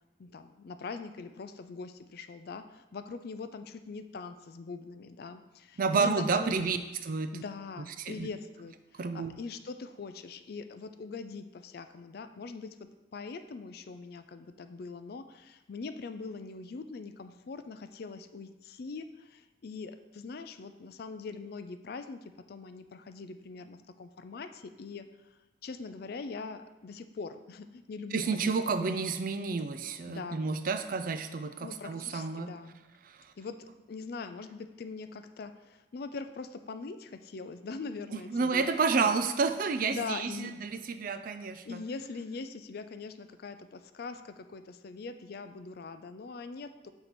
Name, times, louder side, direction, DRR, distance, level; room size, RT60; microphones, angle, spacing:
voice 1, 0.2-2.6 2.9-6.7 7.3-8.7 9.0-12.7 13.1-19.0 19.6-22.2 22.5-24.5 24.8-25.0 25.6-28.5 28.8-28.9 30.1-30.5 31.6-32.8 33.4-33.6 33.9-35.5 35.9-38.7 39.0-39.1 39.9-40.5 41.7-44.2 44.5-46.9, left 4 dB, 50° left, 10 dB, 0.4 m, -42 dB
voice 2, 5.8-6.8 7.0-7.4 8.0-8.3 9.0-9.3 28.1-32.5 33.1-33.2 38.1-41.8, right 4 dB, 45° right, 9 dB, 0.4 m, -30 dB
6.7 x 4.4 x 4.2 m, 1.1 s
head